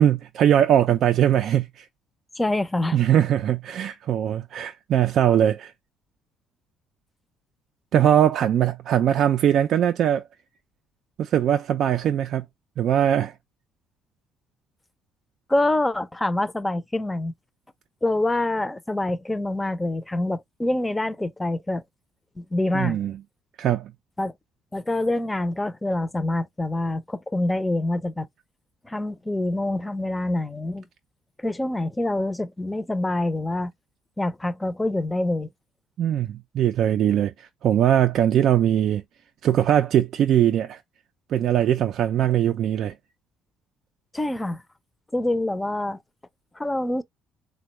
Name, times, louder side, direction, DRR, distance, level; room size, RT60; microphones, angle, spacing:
voice 1, 0.0-1.9 2.9-5.7 7.9-10.2 11.2-12.4 12.8-13.3 22.7-23.2 23.6-23.9 36.0-39.0 39.4-40.8 41.3-43.0, right 10 dB, 65° right, 0.3 m, -21 dB
voice 2, 2.4-3.0 15.5-17.3 18.0-21.8 22.4-23.0 24.2-24.3 24.7-28.3 28.8-30.9 31.4-33.7 34.2-35.5 44.1-44.6 45.1-46.0 46.5-47.0, left 1 dB, 15° left, 0.5 m, -26 dB
3.6 x 2.2 x 2.9 m
supercardioid pair, 85°, 0 cm